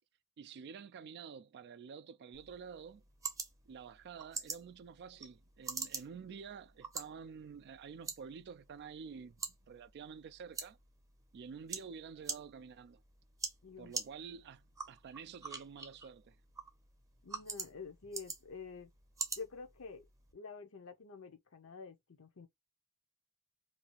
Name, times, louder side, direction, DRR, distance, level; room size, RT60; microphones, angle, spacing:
voice 1, 0.4-3.0 3.7-10.8 11.3-13.0 13.8-16.4, right 6 dB, 50° right, 0.3 m, -49 dB
sound 1, 2.3-20.3, right 4 dB, 15° right, 0.7 m, -46 dB
voice 2, 13.6-13.9 17.2-18.9 19.4-20.1 20.3-22.5, left 4 dB, 65° left, 0.7 m, -48 dB
2.7 x 2.4 x 2.9 m
head